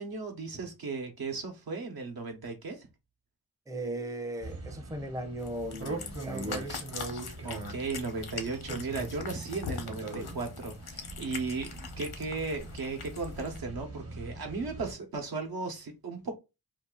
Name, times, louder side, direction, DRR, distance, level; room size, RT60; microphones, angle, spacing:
voice 1, 0.0-2.9 7.4-16.4, right 4 dB, 75° right, 1.0 m, -36 dB
voice 2, 3.7-6.9, right 1 dB, 10° right, 0.5 m, -37 dB
sound 1, 4.4-14.9, right 3 dB, 40° right, 0.9 m, -42 dB
Cat, 5.4-13.6, left 6 dB, 80° left, 0.8 m, -42 dB
2.7 x 2.4 x 3.7 m
wide cardioid pair, 75°, 37 cm